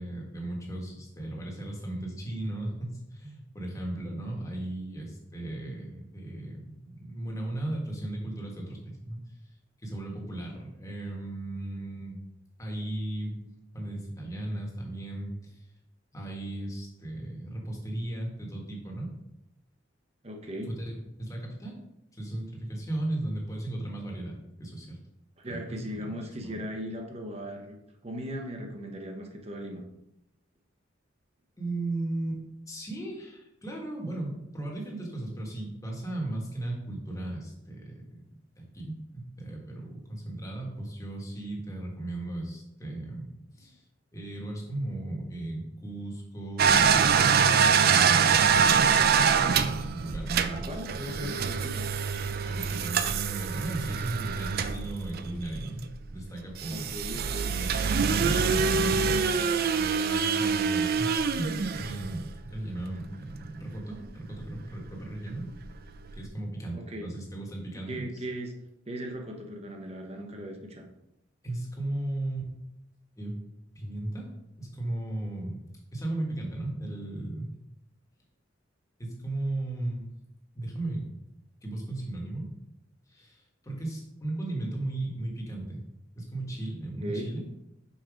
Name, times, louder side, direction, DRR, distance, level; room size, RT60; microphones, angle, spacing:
voice 1, 0.0-9.2 9.8-12.2 12.6-13.4 13.7-15.7 16.1-19.1 20.7-21.8 22.1-25.0 25.5-26.6 31.6-32.4 32.7-38.2 38.6-43.8 44.1-51.4 52.4-55.8 56.1-59.3 59.7-61.1 61.3-65.5 66.1-68.2 71.4-72.5 73.2-73.4 73.7-74.3 74.6-75.6 75.9-77.5 79.0-80.1 80.5-81.1 81.6-82.5 83.1-85.8 86.1-87.4, right 1 dB, 15° left, -1 dB, 1.5 m, -36 dB
voice 2, 20.2-20.7 25.4-27.8 28.0-29.8 50.5-51.8 56.7-57.5 66.7-67.1 67.9-68.5 68.9-70.9 87.0-87.3, equal, 35° right, 3 dB, 0.9 m, -38 dB
sound 1, 46.6-55.9 56.6-62.5 64.0-64.1 64.4-64.5 65.6-65.7 65.9-66.1, right 6 dB, 55° right, 0.4 m, -25 dB
5.6 x 4.5 x 4.9 m, 0.86 s
head